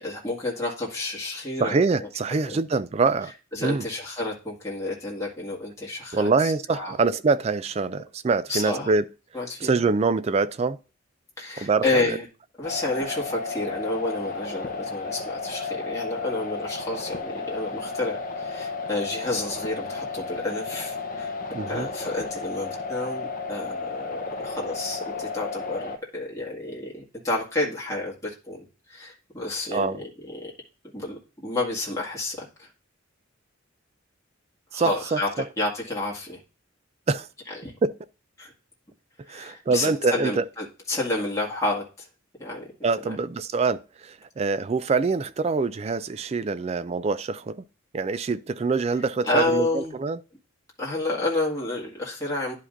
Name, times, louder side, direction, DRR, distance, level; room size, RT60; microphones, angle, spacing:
voice 1, 0.0-2.1 2.5-2.6 3.5-7.0 8.5-8.9 9.3-9.9 11.4-12.3 12.6-21.3 21.7-30.5 30.9-32.7 34.7-35.3 35.6-36.4 37.5-37.7 38.4-38.5 39.3-42.1 42.4-42.7 43.1-43.2 49.2-50.0 50.8-52.5, left 2 dB, 15° left, 2.0 m, -30 dB
voice 2, 1.6-3.3 3.6-3.8 6.1-9.0 9.6-10.8 11.6-12.2 21.5-21.9 29.7-30.0 34.7-35.2 37.1-37.3 37.8-37.9 39.3-40.4 42.8-47.6 47.9-50.2, right 4 dB, 30° right, 0.3 m, -25 dB
sound 1, 12.6-26.0, left 4 dB, 40° left, 0.8 m, -33 dB
11.0 x 5.0 x 2.5 m
head